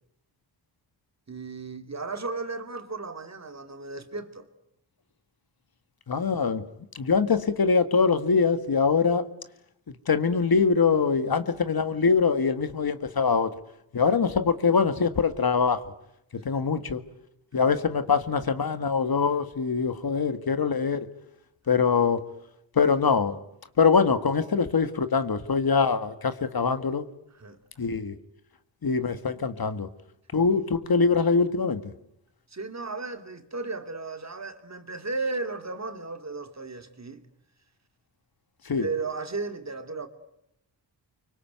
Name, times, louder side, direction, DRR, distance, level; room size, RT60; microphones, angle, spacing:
voice 1, 1.3-4.5 14.1-14.2 16.5-16.7 17.5-17.7 21.7-21.8 27.3-27.6 30.3-30.5 32.5-37.3 38.8-40.1, right 3 dB, 35° right, 2.6 m, -35 dB
voice 2, 6.1-6.7 7.0-9.3 10.1-13.5 13.9-15.8 16.5-17.0 17.5-21.1 21.7-22.2 22.8-23.4 23.8-27.0 27.8-28.2 28.8-29.9 30.3-31.8 38.7-38.9, left 5 dB, 55° left, 1.9 m, -23 dB
25.0 x 24.0 x 9.3 m
cardioid pair, 75°, 44 cm